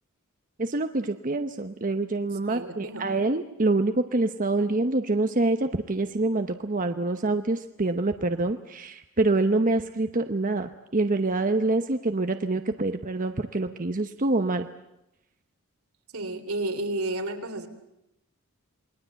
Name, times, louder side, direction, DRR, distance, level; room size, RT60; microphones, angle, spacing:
voice 1, 0.6-14.7, right 2 dB, 40° right, 7 dB, 0.9 m, -26 dB
voice 2, 2.5-3.1 16.1-17.7, right 2 dB, 85° right, 5 dB, 3.4 m, -31 dB
28.0 x 21.0 x 8.2 m, 0.88 s
head